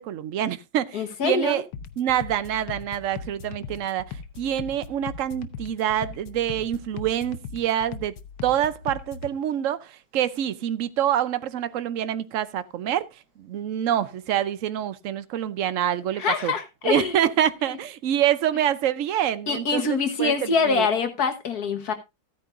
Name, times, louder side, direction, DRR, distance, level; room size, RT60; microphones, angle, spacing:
voice 1, 0.0-1.6 2.0-8.1 8.4-13.1 13.4-16.5 16.8-20.9, right 10 dB, 60° right, 0.8 m, -26 dB
voice 2, 0.9-1.6 16.2-17.1 19.5-21.9, left 4 dB, 55° left, 1.6 m, -24 dB
sound 1, 1.7-9.3, left 6 dB, 75° left, 1.5 m, -39 dB
14.5 x 9.5 x 2.5 m
omnidirectional pair, 2.0 m